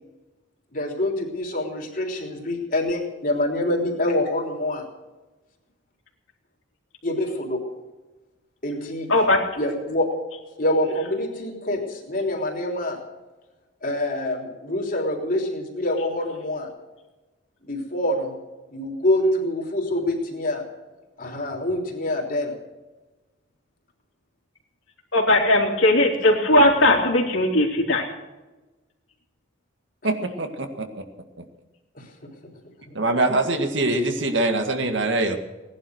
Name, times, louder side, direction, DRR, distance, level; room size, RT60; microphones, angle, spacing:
voice 1, 0.7-4.8 7.0-7.6 8.6-9.1 9.6-10.1 10.6-13.0 13.8-16.7 17.6-18.3 18.7-20.6 21.2-22.5 32.0-32.1, left 1 dB, 45° left, 1 dB, 3.5 m, -25 dB
voice 2, 25.1-28.1, left 1 dB, 75° left, 1 dB, 3.3 m, -18 dB
voice 3, 30.0-30.9 31.4-31.5 32.9-35.4, right 2 dB, 65° right, 6 dB, 1.9 m, -23 dB
18.0 x 11.0 x 6.4 m, 1.1 s
head